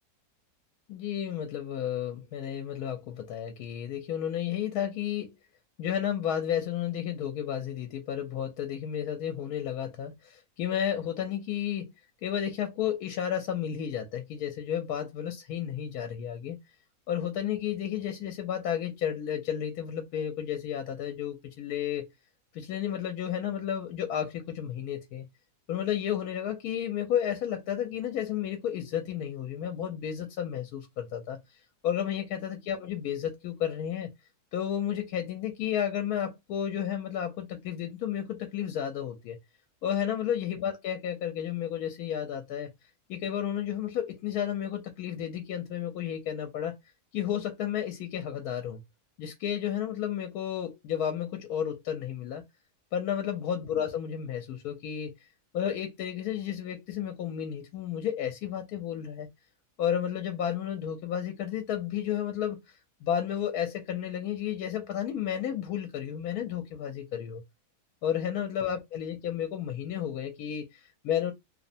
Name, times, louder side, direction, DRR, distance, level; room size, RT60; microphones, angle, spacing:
voice 1, 0.9-5.3 5.8-11.9 12.2-16.6 17.1-22.1 22.5-25.3 25.7-34.1 34.5-39.4 39.8-42.7 43.1-46.8 47.1-48.8 49.2-52.4 52.9-55.3 55.5-59.3 59.8-67.4 68.0-71.3, left 9 dB, 75° left, 1.0 m, -32 dB
2.9 x 2.1 x 2.5 m
omnidirectional pair, 1.7 m